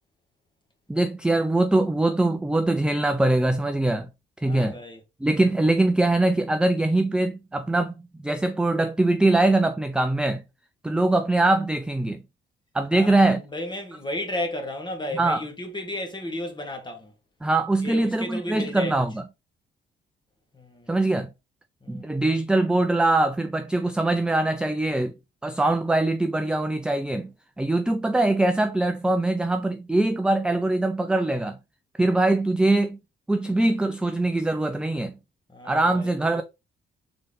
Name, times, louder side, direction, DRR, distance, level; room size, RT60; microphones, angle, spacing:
voice 1, 0.9-4.1 4.4-4.8 5.2-10.4 10.8-12.2 12.7-13.4 15.1-15.4 17.4-19.2 20.9-21.3 21.9-25.1 25.4-31.6 32.0-33.0 33.3-35.1 35.6-36.4, right 2 dB, 5° right, 0.4 m, -22 dB
voice 2, 4.4-5.0 10.8-11.0 12.9-17.1 17.8-19.0 20.5-21.0 21.8-22.2 35.5-36.4, left 1 dB, 20° left, 1.5 m, -34 dB
3.9 x 3.6 x 3.4 m
cardioid pair, 90°, 20 cm